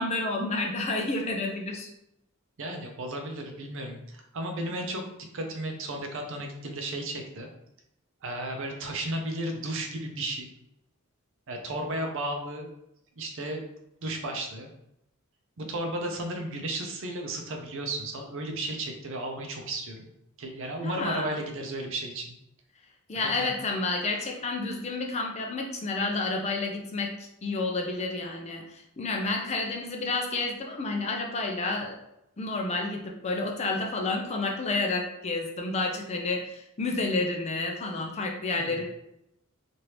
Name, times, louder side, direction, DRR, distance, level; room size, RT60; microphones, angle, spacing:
voice 1, 0.0-1.9 20.8-21.4 23.1-32.0 32.4-38.9, left 3 dB, 30° left, 2 dB, 0.4 m, -30 dB
voice 2, 2.6-5.0 5.3-7.5 8.2-10.5 11.5-12.7 13.2-13.7 14.0-14.7 15.6-20.1 20.4-22.4 23.1-23.5 38.6-38.8, right 1 dB, 60° right, 3 dB, 0.6 m, -34 dB
3.3 x 2.5 x 2.9 m, 0.82 s
head